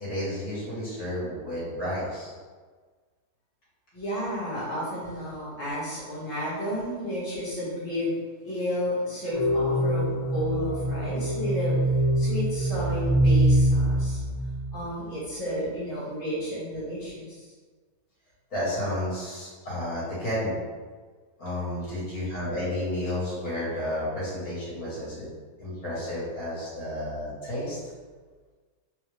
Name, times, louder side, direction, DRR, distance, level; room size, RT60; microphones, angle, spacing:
voice 1, 0.0-2.3 18.5-20.6 21.4-25.3 25.6-27.8, left 1 dB, 55° left, -9 dB, 1.8 m, -31 dB
voice 2, 3.9-8.1 8.4-17.5, equal, 15° left, -10 dB, 1.1 m, -32 dB
sound 1, 9.3-14.7, right 1 dB, 35° left, 0.7 m, -24 dB
3.7 x 2.4 x 3.1 m, 1.5 s
omnidirectional pair, 1.9 m